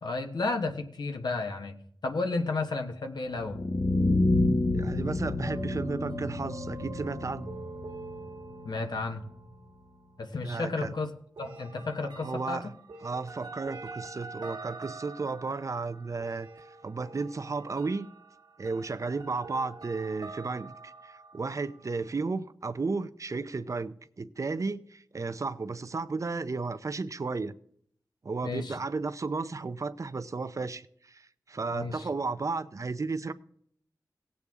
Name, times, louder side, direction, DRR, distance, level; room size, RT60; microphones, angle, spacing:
voice 1, 0.0-1.7 2.0-3.6 8.6-9.2 10.2-11.1 11.4-12.7 28.4-28.8 31.7-32.1, left 3 dB, 75° left, 1.2 m, -32 dB
sound 1, 3.3-9.4, left 2 dB, 50° left, 1.0 m, -29 dB
voice 2, 4.7-7.5 10.4-10.9 12.2-12.7 13.0-18.1 18.6-27.5 28.2-33.3, right 4 dB, 50° right, 0.6 m, -34 dB
sound 2, 5.4-9.7 11.4-21.9, right 3 dB, 80° right, 1.3 m, -45 dB
17.5 x 8.4 x 3.6 m
wide cardioid pair, 85°, 7 cm